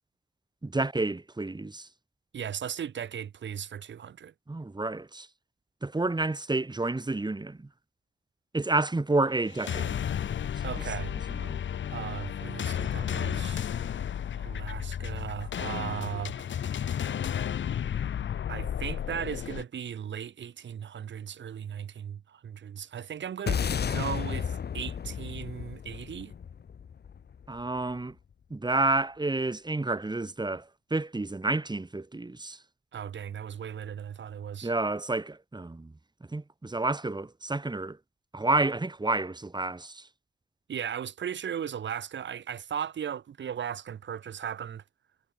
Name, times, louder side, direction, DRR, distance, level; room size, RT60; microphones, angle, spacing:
voice 1, 0.6-1.9 4.5-5.3 5.8-7.7 8.5-10.0 11.3-11.6 27.5-28.1 28.5-32.6 34.6-35.9 36.3-38.0 38.3-40.1, right 2 dB, 20° right, 7.0 m, -30 dB
voice 2, 2.3-4.3 10.6-11.1 11.9-13.7 14.4-16.8 18.5-23.6 23.9-26.3 32.9-34.7 40.7-44.8, right 8 dB, 75° right, 4.9 m, -37 dB
sound 1, 9.5-19.6, left 9 dB, 80° left, 4.6 m, -33 dB
sound 2, 23.5-27.9, left 7 dB, 60° left, 1.7 m, -33 dB
cardioid pair, 80°, 19 cm